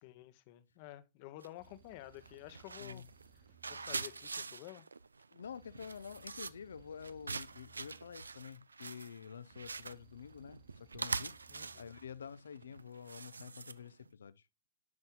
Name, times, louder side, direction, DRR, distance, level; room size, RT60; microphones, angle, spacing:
voice 1, 0.0-3.0 3.7-4.9 11.5-11.9, left 15 dB, 50° left, 0.8 m, -51 dB
sound 1, 1.4-1.7 2.1-14.1, right 4 dB, 85° right, 0.3 m, -44 dB
sound 2, 1.6-4.7 5.4-8.7 9.5-12.3, right 8 dB, 35° right, 1.3 m, -65 dB
voice 2, 5.3-11.4 11.8-14.4, left 7 dB, 75° left, 0.4 m, -49 dB
9.5 x 5.4 x 2.2 m
hypercardioid pair, 105°, 0 cm